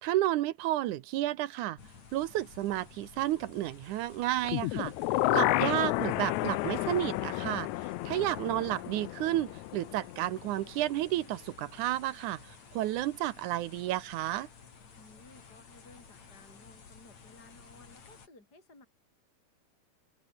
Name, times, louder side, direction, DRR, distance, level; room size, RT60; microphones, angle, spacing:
voice 1, 0.0-1.8 2.1-4.9 5.3-14.5, right 14 dB, 70° right, 2.1 m, -31 dB
sound 1, 1.8-18.3, left 5 dB, 50° left, 4.8 m, -54 dB
sound 2, 4.4-10.5 10.8-10.9, left 18 dB, 80° left, 1.7 m, -31 dB
voice 2, 15.0-18.9, left 2 dB, 25° left, 6.7 m, -57 dB
open air
omnidirectional pair, 4.0 m